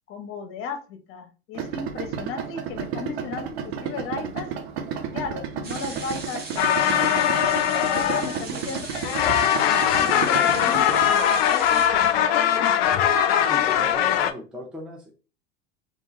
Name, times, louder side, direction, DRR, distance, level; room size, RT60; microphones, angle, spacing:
voice 1, 0.1-4.5 5.1-7.5 7.9-9.2 9.6-12.9, left 5 dB, 40° left, 6 dB, 0.8 m, -36 dB
Idling, 1.5-11.1, right 7 dB, 65° right, 0.6 m, -32 dB
sound 1, 5.6-11.9, right 3 dB, 30° right, 0.8 m, -38 dB
sound 2, 6.6-8.7 8.9-14.3, left 9 dB, 65° left, 0.5 m, -21 dB
voice 2, 13.4-15.1, equal, 5° right, -2 dB, 0.5 m, -37 dB
2.4 x 2.2 x 2.9 m, 0.34 s
hypercardioid pair, 80°, 34 cm